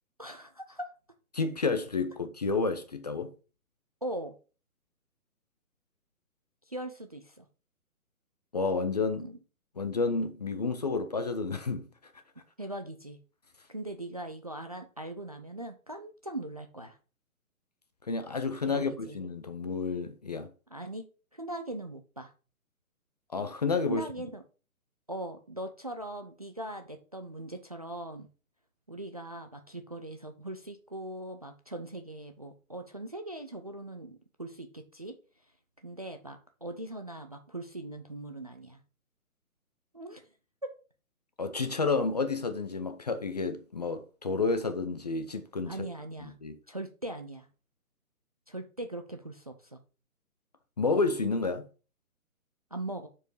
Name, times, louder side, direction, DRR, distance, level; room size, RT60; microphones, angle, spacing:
voice 1, 0.2-0.9 4.0-4.3 6.7-7.5 9.2-9.4 12.6-13.2 13.7-17.0 18.7-19.2 20.7-21.1 21.3-22.3 23.9-24.4 25.1-28.3 28.9-35.2 35.8-38.8 39.9-40.3 40.6-40.7 45.7-46.3 46.7-47.5 48.5-49.8 52.7-53.1, right 1 dB, 30° right, 0.4 m, -40 dB
voice 2, 1.3-3.3 8.5-9.3 9.8-11.9 18.1-20.5 23.3-24.0 41.4-45.9 46.2-46.6 50.8-51.6, left 4 dB, 30° left, 0.5 m, -30 dB
6.4 x 4.6 x 4.6 m
figure-of-eight pair, 145°, 43 cm